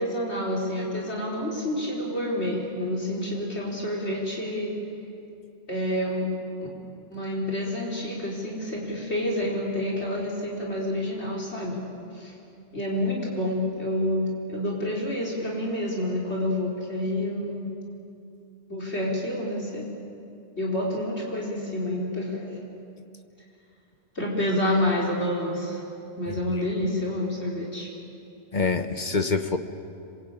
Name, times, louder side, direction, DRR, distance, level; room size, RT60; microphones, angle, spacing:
voice 1, 0.0-4.7 5.7-6.3 7.1-11.8 12.1-12.3 12.7-17.7 18.7-19.9 20.6-22.5 24.1-25.8 26.2-27.9, left 1 dB, 65° left, -2 dB, 4.5 m, -28 dB
voice 2, 28.5-29.6, left 4 dB, 40° left, 7 dB, 1.3 m, -25 dB
27.0 x 23.0 x 8.9 m, 2.6 s
omnidirectional pair, 1.2 m